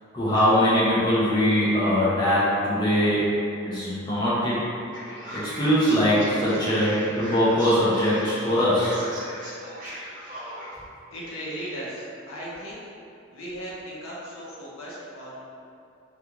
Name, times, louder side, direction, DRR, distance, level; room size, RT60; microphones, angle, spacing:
voice 1, 0.1-3.3 3.6-4.6 5.3-9.0, equal, 20° left, -9 dB, 0.5 m, -22 dB
Male speech man speaking, 4.9-10.7, equal, 40° right, 0.7 m, -38 dB
voice 2, 11.1-12.8 13.3-15.4, equal, 90° left, -6 dB, 0.6 m, -37 dB
2.4 x 2.3 x 2.9 m, 2.6 s
head